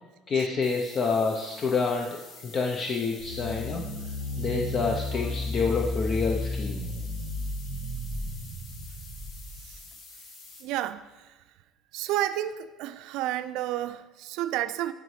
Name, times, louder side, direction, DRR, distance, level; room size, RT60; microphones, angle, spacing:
voice 1, 0.3-3.8 4.4-6.8, left 4 dB, 40° left, 0.6 m, -28 dB
sound 1, 0.6-10.6, left 3 dB, 65° left, 1.5 m, -48 dB
sound 2, 3.2-9.7, left 2 dB, 85° left, 1.9 m, -33 dB
voice 2, 10.6-11.4 11.9-14.9, right 13 dB, 75° right, 0.3 m, -31 dB
10.5 x 4.0 x 3.2 m
supercardioid pair, 105°, 0 cm